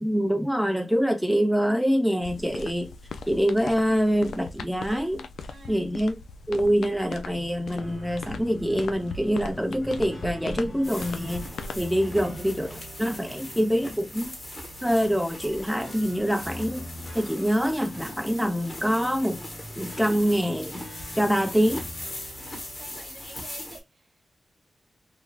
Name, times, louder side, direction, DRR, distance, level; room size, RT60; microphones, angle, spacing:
voice 1, 0.0-2.9 3.3-5.2 5.7-6.2 6.5-14.4 14.8-16.9 17.1-19.4 19.8-20.9 21.1-21.9, equal, ahead, 0.6 m, -25 dB
sound 1, 2.2-11.9, left 3 dB, 85° left, 0.3 m, -39 dB
voice 2, 5.5-5.9 12.0-12.3 22.8-23.8, right 3 dB, 70° right, 0.9 m, -48 dB
sound 2, 7.8-22.9, equal, 50° left, 1.7 m, -44 dB
sound 3, 10.8-23.8, left 1 dB, 30° left, 1.1 m, -40 dB
3.3 x 2.3 x 2.2 m
cardioid pair, 70°, 0 cm